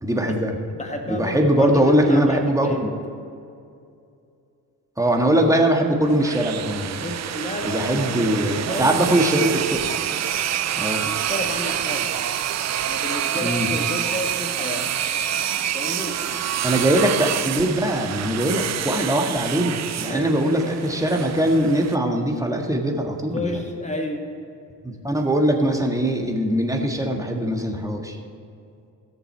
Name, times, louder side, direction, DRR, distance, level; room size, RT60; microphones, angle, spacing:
voice 1, 0.0-0.5 1.1-3.0 5.0-7.1 7.6-9.8 10.7-11.1 13.4-13.7 16.6-23.5 24.8-28.2, right 1 dB, 5° right, 2 dB, 1.7 m, -21 dB
voice 2, 0.7-2.8 7.0-9.0 11.0-12.4 12.8-14.9 15.7-16.2 20.0-20.4 23.3-24.3 24.9-25.0, left 1 dB, 15° left, 3 dB, 2.0 m, -31 dB
sound 1, 6.0-22.0, right 10 dB, 35° right, 0.6 m, -27 dB
17.0 x 6.9 x 4.4 m, 2.5 s
hypercardioid pair, 45°, 45 cm